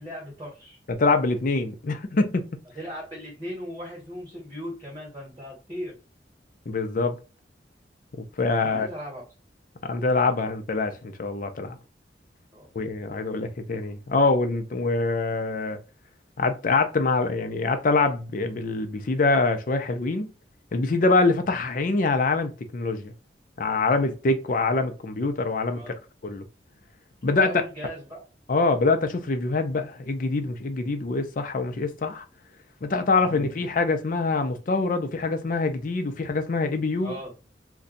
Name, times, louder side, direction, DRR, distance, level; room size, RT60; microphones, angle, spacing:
voice 1, 0.0-0.8 2.7-5.9 8.6-9.2 12.5-12.7 25.7-26.0 27.4-28.2 33.2-33.4 37.0-37.3, equal, 25° right, 1.5 m, -37 dB
voice 2, 0.9-2.5 6.7-7.2 8.2-8.9 9.8-11.8 12.7-15.8 16.4-20.3 20.7-23.1 23.6-25.9 26.2-26.4 27.2-27.6 28.5-32.2 32.8-37.2, left 3 dB, 50° left, 0.5 m, -24 dB
2.6 x 2.2 x 3.9 m
head